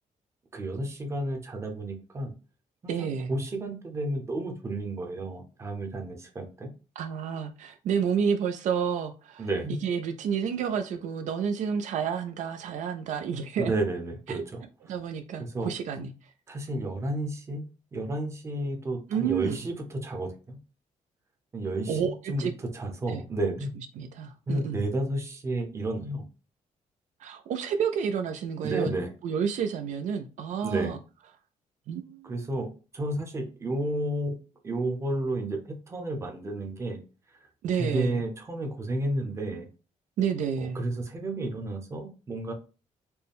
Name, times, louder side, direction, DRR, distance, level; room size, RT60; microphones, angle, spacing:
voice 1, 0.5-2.3 2.8-6.7 9.4-9.7 13.6-14.6 15.4-15.7 16.5-17.6 17.9-20.6 21.5-22.5 22.7-23.7 24.5-26.2 28.6-29.1 30.6-31.0 32.2-34.4 34.6-35.6 35.9-37.0 37.8-39.7 40.6-42.5, right 1 dB, 20° right, 0.7 m, -31 dB
voice 2, 2.9-3.3 7.0-13.7 14.3-14.4 14.9-16.3 19.1-19.6 21.9-22.5 23.1-23.2 24.0-24.8 27.2-28.9 29.2-31.0 31.9-32.3 37.6-38.2 40.2-40.8, right 7 dB, 65° right, 0.4 m, -30 dB
4.3 x 2.1 x 3.4 m
cardioid pair, 170°, 14 cm